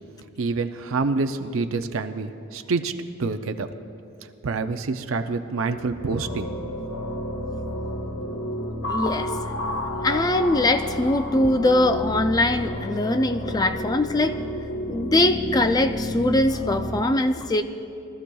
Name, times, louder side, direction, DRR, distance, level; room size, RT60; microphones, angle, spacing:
voice 1, 0.4-2.9 3.2-3.7 4.4-6.5, right 4 dB, 70° right, 7 dB, 0.5 m, -27 dB
sound 1, 5.5-17.0, left 1 dB, 85° left, 1.1 m, -31 dB
voice 2, 8.9-9.3 10.0-14.4 14.8-17.6, left 1 dB, 20° left, 9 dB, 0.4 m, -22 dB
22.0 x 13.0 x 2.3 m, 2.7 s
head